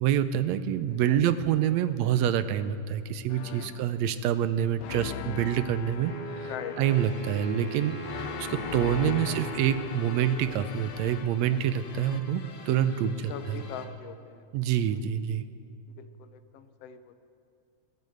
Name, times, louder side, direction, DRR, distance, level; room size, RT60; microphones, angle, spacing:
voice 1, 0.0-6.1 6.4-6.5 6.8-13.6 14.5-15.4, right 10 dB, 75° right, 12 dB, 1.7 m, -27 dB
voice 2, 0.9-1.2 1.8-1.9 3.5-3.7 6.4-6.8 9.0-9.4 11.5-11.6 13.3-14.4 16.0-17.1, left 8 dB, 70° left, 10 dB, 1.6 m, -41 dB
sound 1, 3.3-4.0 4.8-7.3 8.0-11.6, left 11 dB, 90° left, 2.1 m, -40 dB
Wind instrument woodwind instrument, 6.0-11.0, right 1 dB, 20° left, 1.6 m, -40 dB
sound 2, 6.9-13.9, left 4 dB, 50° left, 1.3 m, -47 dB
17.5 x 10.5 x 7.8 m, 2.6 s
omnidirectional pair, 3.4 m